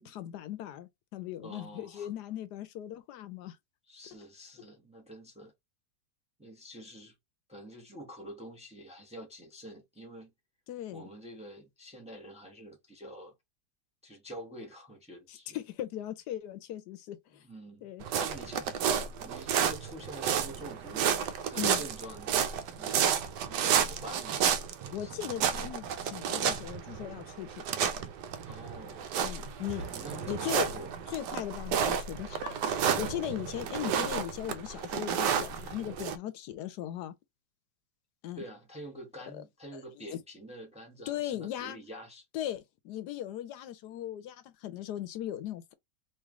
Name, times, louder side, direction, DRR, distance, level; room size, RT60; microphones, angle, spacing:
voice 1, 0.0-3.6 10.7-11.1 15.3-17.4 17.8-18.0 21.6-21.8 24.9-27.6 29.2-29.9 30.3-30.7 31.1-37.1 38.2-38.4 39.7-39.8 40.1-40.2 41.1-41.8 42.3-45.7, left 12 dB, 75° left, 1.1 m, -38 dB
voice 2, 1.4-2.1 3.9-5.5 6.4-7.1 7.5-10.3 10.9-13.3 14.0-15.6 17.4-18.9 19.2-21.2 21.5-22.3 22.8-23.0 23.3-24.5 24.8-25.1 28.5-30.9 38.4-42.2, equal, 5° right, 0.8 m, -47 dB
sound 1, 18.0-36.2, right 8 dB, 80° right, 1.2 m, -31 dB
3.1 x 3.0 x 3.5 m
omnidirectional pair, 1.8 m